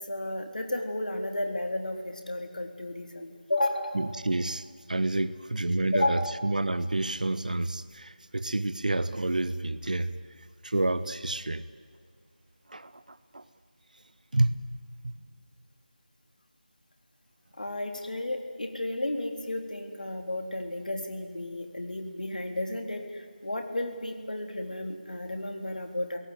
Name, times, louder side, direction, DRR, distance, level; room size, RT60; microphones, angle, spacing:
voice 1, 0.0-4.2 5.9-6.5 17.6-26.2, left 1 dB, 60° left, 3.7 m, -33 dB
voice 2, 3.9-10.1 10.6-11.6 12.7-13.4 14.3-14.5 15.0-15.1, right 2 dB, 60° right, 1.3 m, -29 dB
30.0 x 17.5 x 9.4 m
figure-of-eight pair, 165°, 5 cm